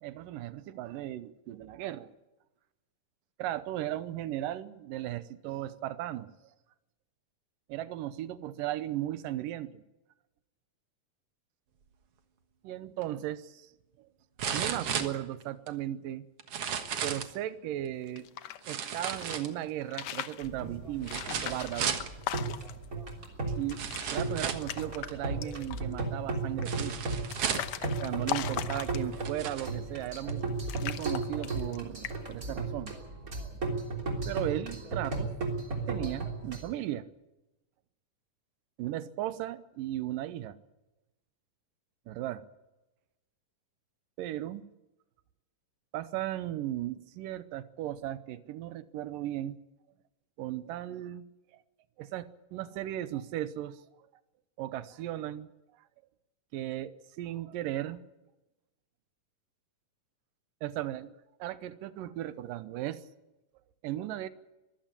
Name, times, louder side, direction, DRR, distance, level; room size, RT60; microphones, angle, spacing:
voice 1, 0.0-2.1 3.4-6.3 7.7-9.8 12.6-13.7 14.0-14.1 14.5-16.3 17.0-18.3 18.7-22.0 23.6-23.8 24.1-27.0 28.0-30.5 30.8-32.9 34.3-35.3 35.9-37.1 38.8-40.6 42.1-42.4 44.2-44.7 45.9-49.6 50.4-51.3 52.0-53.8 54.6-55.5 56.5-58.0 60.6-61.1 61.4-63.0 63.8-64.3, right 13 dB, 85° right, 14 dB, 2.6 m, -36 dB
sound 1, 13.0-13.1 14.4-15.7 16.4-17.4 18.6-19.8 21.0-22.1 23.1-23.2 23.8-24.7 26.7-27.8 28.6-28.7 29.1-29.7 30.3-30.4, right 7 dB, 55° right, 2.1 m, -34 dB
sound 2, 18.0-19.4 19.8-20.5 21.0-22.9 23.2-23.3 23.6-24.1 24.4-25.1 25.4-25.9 26.6-29.3 30.0-30.4 30.7-31.8 32.0-32.4, left 11 dB, 65° left, 1.8 m, -39 dB
sound 3, 20.4-36.7, right 3 dB, 25° right, 3.6 m, -35 dB
23.5 x 15.0 x 8.9 m, 1.0 s
omnidirectional pair, 3.8 m